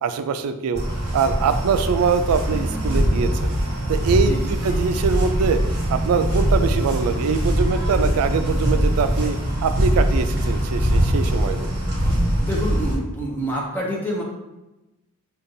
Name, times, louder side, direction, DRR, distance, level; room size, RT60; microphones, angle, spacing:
voice 1, 0.0-0.8 1.1-3.5 3.9-5.6 5.9-11.7, right 5 dB, 80° right, 10 dB, 0.3 m, -23 dB
sound 1, 0.7-13.0, equal, 50° right, 1.2 m, -22 dB
sound 2, 0.9-9.3, equal, 15° right, 0.9 m, -41 dB
voice 2, 4.2-4.5 12.4-14.2, equal, 10° left, -3 dB, 0.5 m, -27 dB
5.2 x 2.3 x 2.6 m, 0.99 s
head